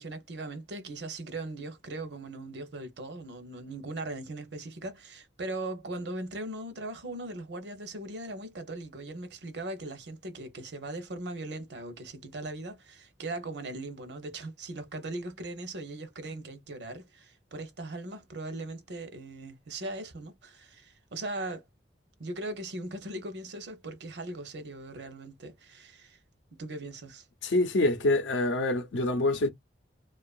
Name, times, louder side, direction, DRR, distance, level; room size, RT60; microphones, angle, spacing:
voice 1, 0.0-21.6 22.2-26.2 26.6-27.3, right 2 dB, 65° right, 0.6 m, -39 dB
voice 2, 27.4-29.5, left 2 dB, 85° left, 0.6 m, -26 dB
2.6 x 2.4 x 2.3 m
head